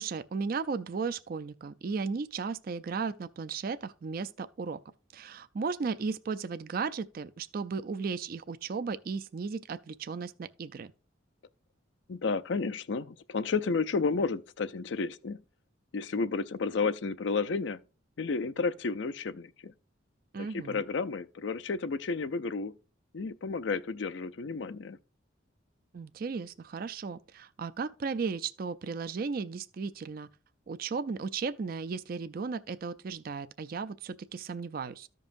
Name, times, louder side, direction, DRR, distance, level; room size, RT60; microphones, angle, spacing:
voice 1, 0.0-4.8 5.1-10.9 20.3-20.8 25.9-30.3 30.7-35.1, right 5 dB, 50° right, 0.4 m, -35 dB
voice 2, 12.1-15.4 15.9-17.8 18.2-19.7 20.4-22.7 23.1-25.0, left 4 dB, 70° left, 0.5 m, -32 dB
14.0 x 5.4 x 2.5 m
head